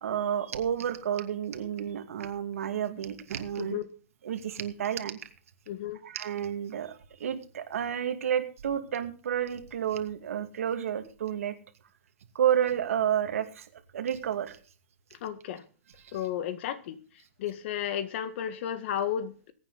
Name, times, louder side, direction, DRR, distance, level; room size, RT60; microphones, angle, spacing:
voice 1, 0.0-3.8 4.2-5.2 6.0-11.5 12.3-14.6, right 9 dB, 80° right, 2.4 m, -30 dB
voice 2, 5.7-6.0 15.2-15.6 16.1-17.0 17.4-19.5, left 10 dB, 55° left, 1.8 m, -33 dB
21.0 x 9.1 x 4.1 m
hypercardioid pair, 150°, 7 cm